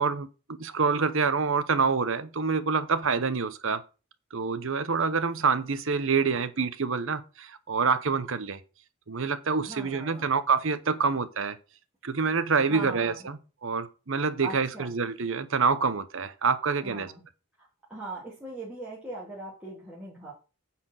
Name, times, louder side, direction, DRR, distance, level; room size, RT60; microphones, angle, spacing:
voice 1, 0.0-3.8 4.3-8.6 9.1-11.6 12.0-17.1, right 5 dB, 60° right, 0.9 m, -27 dB
voice 2, 9.6-10.4 12.7-13.3 14.4-14.9 16.8-17.2 17.6-20.3, right 2 dB, 5° right, 2.5 m, -40 dB
9.4 x 4.4 x 6.3 m
head